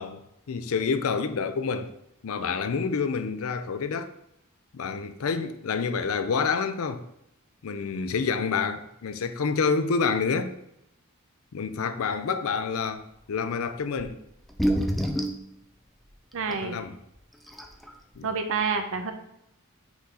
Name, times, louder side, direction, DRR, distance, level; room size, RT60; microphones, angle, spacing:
voice 1, 0.0-1.9 2.2-4.1 4.7-7.0 7.6-10.6 11.5-14.2 16.5-16.9 18.2-18.3, left 5 dB, 65° left, 0.5 m, -28 dB
sound 1, 14.0-14.1 14.4-15.4 16.5-16.6 17.2-17.3 17.5-17.9, equal, ahead, 0.4 m, -26 dB
voice 2, 16.3-16.8 18.2-19.1, right 5 dB, 60° right, 0.7 m, -28 dB
6.0 x 3.8 x 4.2 m
head